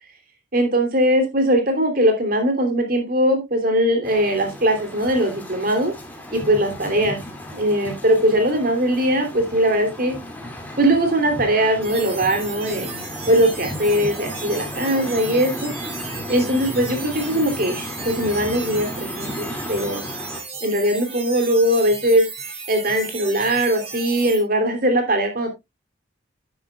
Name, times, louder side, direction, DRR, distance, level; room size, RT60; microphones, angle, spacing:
voice 1, 0.5-5.9 6.3-7.2 7.5-10.1 10.8-12.9 13.3-15.7 16.3-20.0 20.6-25.5, right 1 dB, 45° right, 5 dB, 3.0 m, -20 dB
sound 1, 4.0-20.4, left 1 dB, 10° left, 2.4 m, -34 dB
sound 2, 11.8-24.4, right 4 dB, 30° right, 4.3 m, -35 dB
10.5 x 10.0 x 2.3 m, 0.21 s
head